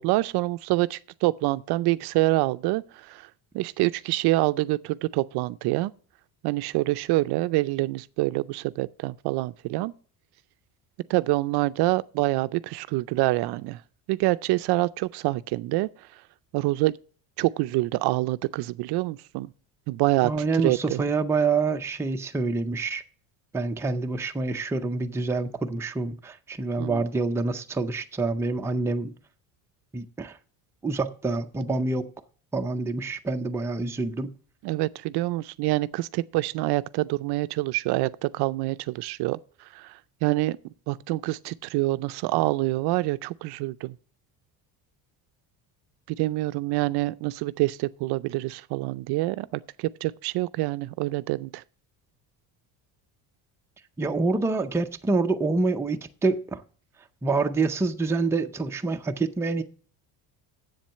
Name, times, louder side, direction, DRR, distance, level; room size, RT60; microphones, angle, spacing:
voice 1, 0.0-3.2 3.5-5.9 6.4-9.9 11.1-13.8 14.1-15.9 16.5-17.0 17.4-19.5 19.9-20.3 20.6-21.0 26.8-27.0 34.6-39.4 39.7-39.9 40.2-40.6 40.9-43.9 46.1-51.6, right 19 dB, 65° right, 0.5 m, -26 dB
voice 2, 20.2-23.0 23.5-29.1 29.9-30.4 30.8-32.1 32.5-34.3 54.0-56.6 57.2-59.6, right 3 dB, 5° right, 0.5 m, -27 dB
7.9 x 7.4 x 6.5 m
cardioid pair, 145°, 43 cm